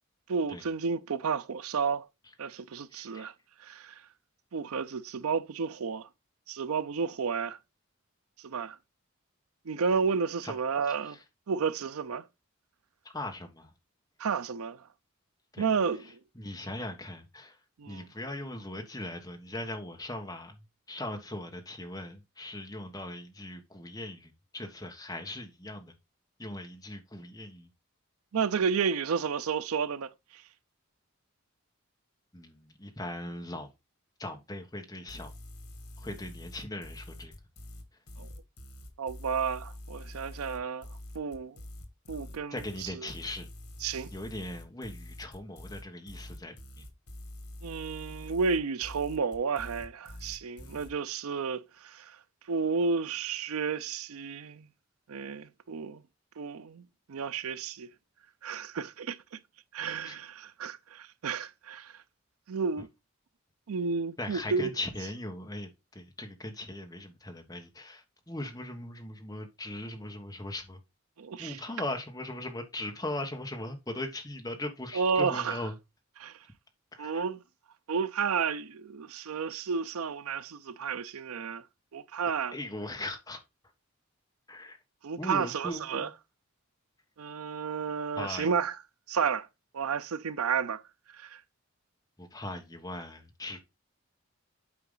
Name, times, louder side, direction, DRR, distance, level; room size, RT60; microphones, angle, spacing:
voice 1, 0.3-2.1 2.4-3.3 3.6-4.0 4.5-6.1 6.5-7.6 8.4-8.8 9.7-11.2 11.5-12.2 14.2-14.8 15.6-16.2 17.8-18.0 28.3-30.4 38.2-38.3 39.0-40.9 41.1-41.6 42.1-43.1 43.8-44.1 47.6-52.2 52.5-54.7 55.1-56.0 56.4-56.8 57.1-57.9 58.4-59.4 59.7-61.9 62.5-62.9 63.7-64.7 71.2-71.6 74.9-75.6 76.2-76.3 77.0-77.4 77.9-81.6 81.9-82.6 85.0-86.1 87.2-88.8 89.1-89.5 89.7-90.8 91.1-91.4, right 5 dB, 85° right, 0.5 m, -31 dB
voice 2, 2.9-3.3 10.4-10.5 13.1-13.7 15.5-15.7 16.4-17.6 17.9-20.6 20.9-25.9 26.4-27.7 32.3-33.7 34.2-35.3 36.0-37.3 42.5-43.5 44.1-46.8 50.6-50.7 59.9-60.2 64.2-70.8 71.4-75.7 76.9-77.2 82.5-83.4 84.5-84.8 85.2-86.1 88.1-88.5 92.2-93.6, left 1 dB, 15° left, 1.3 m, -39 dB
sound 1, 35.1-50.9, left 1 dB, 90° left, 1.7 m, -46 dB
8.6 x 4.8 x 3.9 m
head